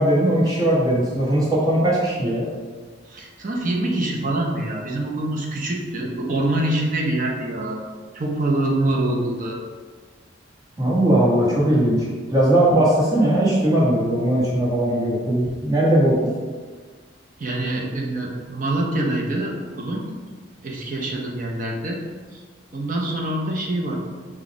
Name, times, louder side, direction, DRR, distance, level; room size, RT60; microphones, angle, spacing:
voice 1, 0.0-2.4 10.8-16.2, right 1 dB, 20° right, -7 dB, 1.2 m, -19 dB
voice 2, 3.1-7.8 8.1-9.6 17.4-20.1 20.6-22.0 22.3-22.4 22.7-23.9, right 1 dB, 45° right, -1 dB, 0.7 m, -25 dB
4.0 x 2.4 x 4.7 m, 1.5 s
head